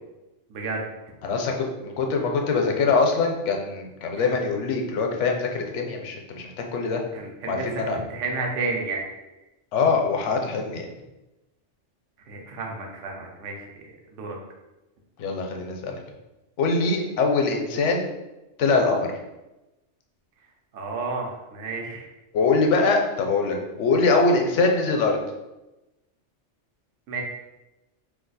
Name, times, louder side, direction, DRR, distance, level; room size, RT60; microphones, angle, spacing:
voice 1, 0.5-0.9 4.1-4.3 7.1-9.0 12.3-14.4 20.7-22.1 27.1-27.2, right 3 dB, 80° right, 0 dB, 1.0 m, -32 dB
voice 2, 1.2-7.0 7.5-8.0 9.7-10.9 15.2-16.0 16.6-18.0 18.6-19.1 22.3-25.2, left 4 dB, 75° left, 2 dB, 0.9 m, -23 dB
2.6 x 2.4 x 3.9 m, 1.0 s
omnidirectional pair, 1.2 m